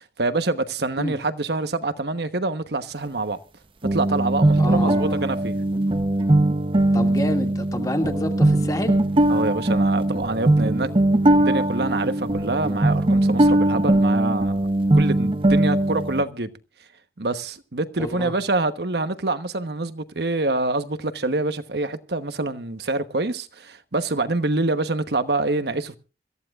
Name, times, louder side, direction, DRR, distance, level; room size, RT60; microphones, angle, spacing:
voice 1, 0.0-3.4 3.9-5.6 9.3-10.9 11.3-14.6 14.9-16.5 17.2-26.0, right 2 dB, 65° right, 1.1 m, -26 dB
sound 1, 3.8-16.2, right 1 dB, 30° right, 0.8 m, -20 dB
voice 2, 4.6-5.2 6.9-9.0 18.0-18.3, left 1 dB, 20° left, 2.3 m, -28 dB
26.0 x 14.5 x 2.4 m
head